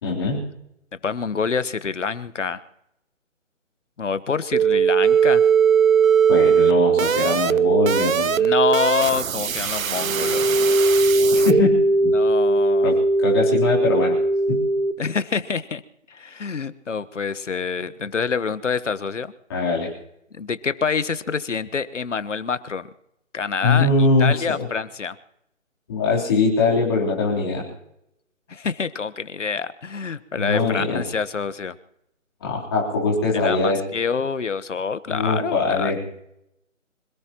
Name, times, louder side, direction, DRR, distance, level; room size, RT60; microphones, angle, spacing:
voice 1, 0.0-0.4 6.3-8.4 11.3-11.8 12.0-12.1 12.8-14.2 14.5-14.6 19.5-19.9 23.6-24.7 25.9-27.6 30.4-31.0 32.4-33.8 35.1-36.0, left 3 dB, 20° left, -4 dB, 3.7 m, -22 dB
voice 2, 1.0-2.6 4.0-5.4 8.3-10.5 12.1-12.9 15.0-15.8 16.1-19.3 20.3-22.9 23.3-23.9 24.2-25.2 28.5-31.8 33.4-35.9, left 5 dB, 65° left, 14 dB, 1.2 m, -26 dB
sound 1, 4.5-11.6, right 8 dB, 85° right, 0.8 m, -19 dB
sound 2, 10.0-14.9, right 1 dB, 65° right, 2.7 m, -19 dB
26.0 x 18.5 x 3.0 m, 0.79 s
hypercardioid pair, 175°, 40 cm